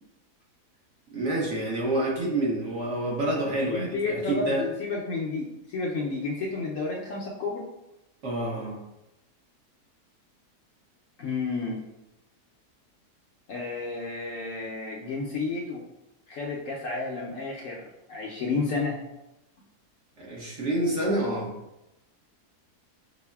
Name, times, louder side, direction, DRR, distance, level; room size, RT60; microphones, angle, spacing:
voice 1, 1.1-4.6 8.2-8.8 20.2-21.5, right 1 dB, 55° right, -4 dB, 1.0 m, -28 dB
voice 2, 3.7-7.7 11.2-11.8 13.5-15.8 16.3-19.0, left 3 dB, 70° left, -3 dB, 0.8 m, -31 dB
6.0 x 2.0 x 2.2 m, 0.92 s
omnidirectional pair, 1.7 m